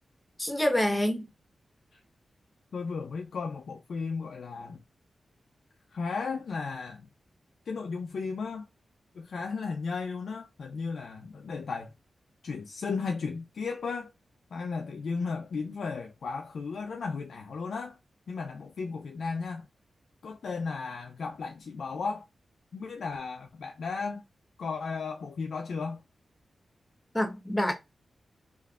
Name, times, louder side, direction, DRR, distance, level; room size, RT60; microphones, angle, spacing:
voice 1, 0.4-1.3 27.1-27.7, left 1 dB, 15° left, 1.0 m, -26 dB
voice 2, 2.7-4.8 5.9-7.1 7.7-8.7 9.1-11.9 12.4-14.1 14.5-18.0 18.3-19.7 20.2-22.3 22.7-24.2 24.6-26.0, left 4 dB, 80° left, 0.3 m, -35 dB
3.4 x 2.5 x 2.3 m
cardioid pair, 45°, 0 cm